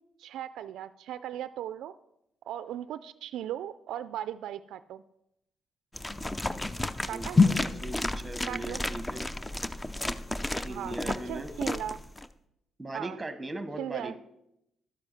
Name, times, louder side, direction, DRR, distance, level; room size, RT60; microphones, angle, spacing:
voice 1, 0.2-1.9 2.5-5.0 7.1-7.4 8.5-8.8 10.7-12.0 12.9-13.2 13.8-14.2, right 11 dB, 80° right, 13 dB, 0.3 m, -37 dB
sound 1, 5.9-12.3, left 3 dB, 15° left, 0.5 m, -30 dB
voice 2, 7.1-9.2 10.5-11.5 12.8-14.1, right 2 dB, 15° right, 10 dB, 1.0 m, -39 dB
11.5 x 7.7 x 5.9 m, 0.83 s
cardioid pair, 90°, 0 cm